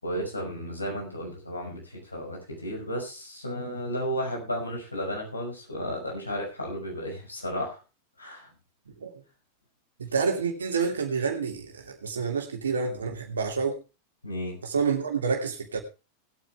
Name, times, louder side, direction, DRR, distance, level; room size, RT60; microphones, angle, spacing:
voice 1, 0.0-7.8 8.2-8.5 14.2-14.6, equal, 80° left, 5.8 m, -33 dB
voice 2, 10.0-13.8 14.6-15.8, right 5 dB, 70° right, 2.7 m, -28 dB
19.0 x 9.2 x 3.4 m
figure-of-eight pair, 90°, 0 cm